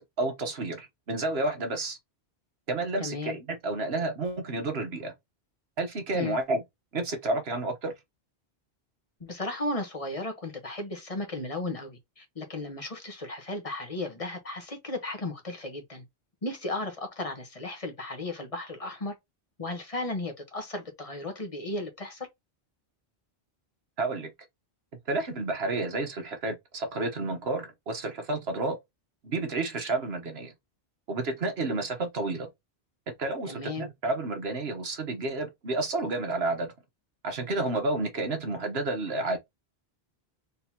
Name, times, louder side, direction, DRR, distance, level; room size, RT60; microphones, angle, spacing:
voice 1, 0.2-2.0 2.7-5.1 5.8-6.6 6.9-7.9 24.0-24.3 25.1-28.8 29.2-30.5 31.1-32.5 33.1-36.7 37.2-39.4, right 2 dB, 70° right, 1.4 m, -30 dB
voice 2, 3.0-3.4 6.1-6.4 9.2-16.0 16.4-19.1 19.6-22.3 33.4-33.9, left 2 dB, 35° left, 1.3 m, -35 dB
4.1 x 3.7 x 2.9 m
omnidirectional pair, 1.1 m